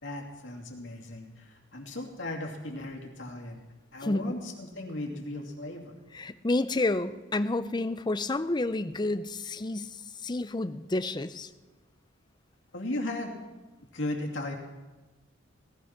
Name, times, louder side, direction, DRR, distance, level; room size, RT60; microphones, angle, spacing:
voice 1, 0.0-3.6 3.9-6.0 12.7-13.3 13.9-14.5, left 1 dB, 65° left, 1 dB, 2.6 m, -36 dB
voice 2, 4.0-4.4 6.1-11.5, left 2 dB, 20° left, 12 dB, 0.5 m, -30 dB
17.5 x 13.0 x 5.9 m, 1.2 s
head